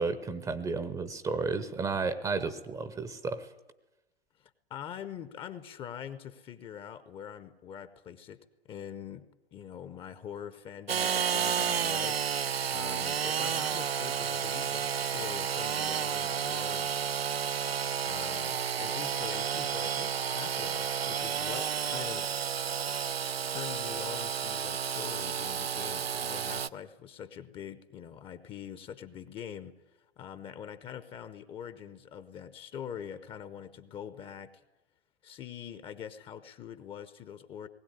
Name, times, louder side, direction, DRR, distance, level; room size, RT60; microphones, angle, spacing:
voice 1, 0.0-3.5, right 4 dB, 10° right, 12 dB, 0.8 m, -32 dB
voice 2, 4.4-12.2 12.5-17.2 18.0-22.4 23.5-29.7 30.2-34.5 35.2-37.7, left 9 dB, 15° left, 12 dB, 0.8 m, -44 dB
Engine / Sawing, 10.9-26.7, right 8 dB, 75° right, 0.6 m, -31 dB
19.5 x 16.5 x 9.6 m, 1.0 s
figure-of-eight pair, 110°, 31 cm